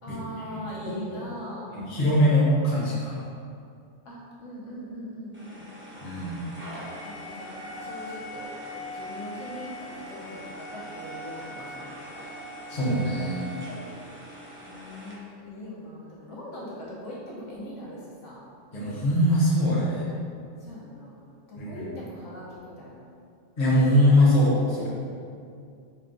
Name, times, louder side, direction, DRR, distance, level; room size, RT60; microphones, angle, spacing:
voice 1, 0.0-2.3 4.0-5.7 7.0-12.3 14.6-18.4 20.6-21.2 21.5-23.1, left 1 dB, 75° left, -7 dB, 1.3 m, -41 dB
voice 2, 0.8-1.2 1.7-3.2 6.0-6.4 12.7-13.4 18.7-20.0 21.6-21.9 23.6-24.9, left 1 dB, 35° left, -8 dB, 1.0 m, -22 dB
sound 1, 5.3-15.1, equal, 10° right, 0.7 m, -41 dB
4.5 x 2.3 x 3.8 m, 2.3 s
omnidirectional pair, 1.3 m